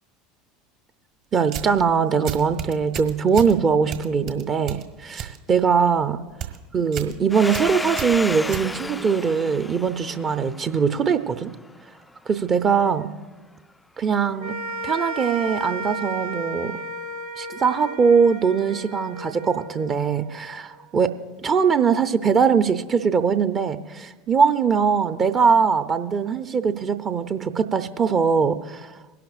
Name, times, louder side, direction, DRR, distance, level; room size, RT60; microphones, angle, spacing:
voice 1, 1.3-6.2 6.7-11.5 12.3-13.1 14.0-14.5 14.8-16.7 17.4-21.1 21.4-28.9, right 6 dB, 35° right, 10 dB, 0.6 m, -21 dB
sound 1, 1.4-1.8 2.2-3.5 3.9-5.4 5.7-6.0 6.3-6.6 6.9-7.2 7.5-9.1, right 10 dB, 55° right, 1.5 m, -33 dB
Domestic sounds home sounds, 7.3-11.7, left 2 dB, 10° left, 0.3 m, -32 dB
sound 2, 14.4-20.8, right 1 dB, 75° right, 0.9 m, -34 dB
22.0 x 11.5 x 2.5 m, 1.2 s
figure-of-eight pair, 75°, 0 cm